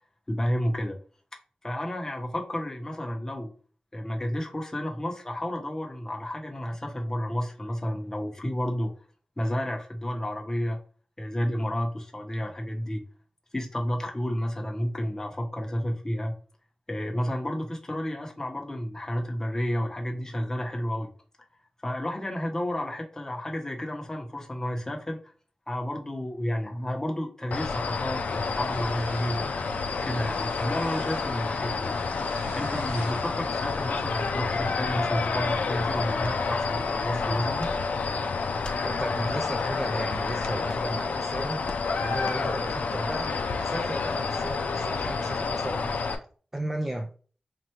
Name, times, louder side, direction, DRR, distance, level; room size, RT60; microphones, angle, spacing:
voice 1, 0.3-1.0 1.6-3.5 3.9-8.9 9.4-10.8 11.2-13.0 13.5-16.3 16.9-21.1 21.8-25.3 25.7-29.5 30.0-32.1 32.5-37.7, equal, 20° left, 1.0 m, -31 dB
sound 1, 27.5-46.1, left 4 dB, 85° left, 0.5 m, -29 dB
sound 2, 28.2-34.3, right 2 dB, 80° right, 1.0 m, -47 dB
sound 3, 37.6-37.8 38.6-38.8 39.7-39.9 40.6-40.9 41.6-41.9 42.2-42.4 43.4-43.5 44.4-44.6, left 2 dB, 35° left, 0.6 m, -41 dB
voice 2, 38.8-46.2 46.5-47.1, right 1 dB, 15° right, 0.4 m, -35 dB
4.3 x 2.6 x 3.1 m
wide cardioid pair, 90°, 3 cm